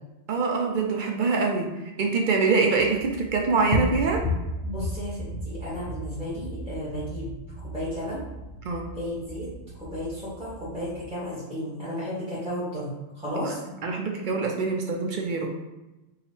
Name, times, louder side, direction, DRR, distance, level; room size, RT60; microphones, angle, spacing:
voice 1, 0.3-1.7 2.0-4.2 8.6-8.9 13.8-15.5, right 4 dB, 60° right, 1 dB, 0.6 m, -24 dB
sound 1, 2.7-11.1, left 1 dB, 80° left, 1.0 m, -34 dB
voice 2, 4.6-7.3 7.6-8.2 8.9-9.5 9.8-13.6, equal, 5° right, -10 dB, 0.9 m, -33 dB
3.0 x 2.4 x 4.3 m, 1.0 s
omnidirectional pair, 1.2 m